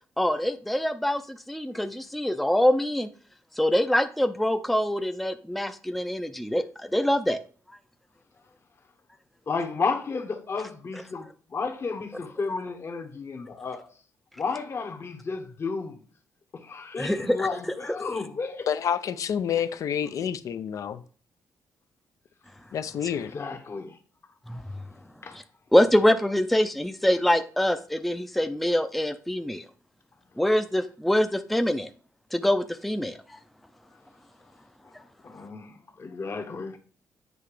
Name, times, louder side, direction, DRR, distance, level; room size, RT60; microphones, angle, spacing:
voice 1, 0.2-3.1 3.6-6.6 6.9-7.4 17.0-17.5 24.5-24.6 25.7-29.6 30.4-31.9 32.3-33.2, left 1 dB, ahead, 0.5 m, -24 dB
voice 2, 9.5-13.9 14.4-16.0 16.5-18.7 23.1-24.0 25.2-25.4 35.2-36.8, left 4 dB, 45° left, 1.1 m, -32 dB
voice 3, 18.7-21.0 22.7-23.4, left 8 dB, 65° left, 0.5 m, -28 dB
7.9 x 2.8 x 4.9 m
cardioid pair, 85°, 6 cm